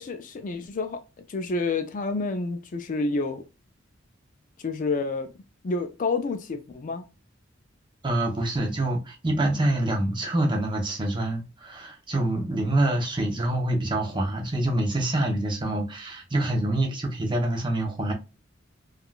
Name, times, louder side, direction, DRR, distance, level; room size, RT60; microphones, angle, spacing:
voice 1, 0.0-3.4 4.6-5.3 5.6-7.0, left 3 dB, 40° left, 0.4 m, -29 dB
voice 2, 8.0-18.1, right 1 dB, 25° right, 0.7 m, -26 dB
3.6 x 2.3 x 2.3 m
head